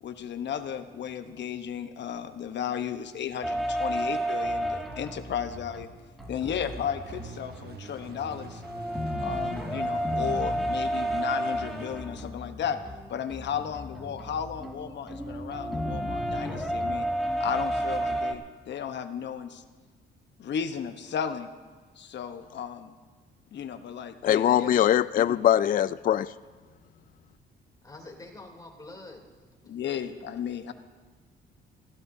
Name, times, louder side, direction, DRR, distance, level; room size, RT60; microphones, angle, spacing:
voice 1, 0.0-5.9 6.3-8.6 9.2-12.8 13.1-17.1 17.4-19.6 20.4-21.5 22.0-22.9 23.5-24.8 25.2-25.4 29.7-30.7, left 8 dB, 65° left, 9 dB, 1.0 m, -34 dB
sound 1, 3.4-5.8 6.2-7.6 8.0-18.3, equal, ahead, 2.1 m, -32 dB
sound 2, 6.2-12.0, right 4 dB, 55° right, 1.3 m, -46 dB
voice 2, 10.5-10.8 27.8-29.2, left 2 dB, 20° left, 0 dB, 3.1 m, -46 dB
voice 3, 24.2-26.3, left 11 dB, 45° left, 15 dB, 0.4 m, -22 dB
26.5 x 16.0 x 2.7 m, 1.4 s
cardioid pair, 90°, 20 cm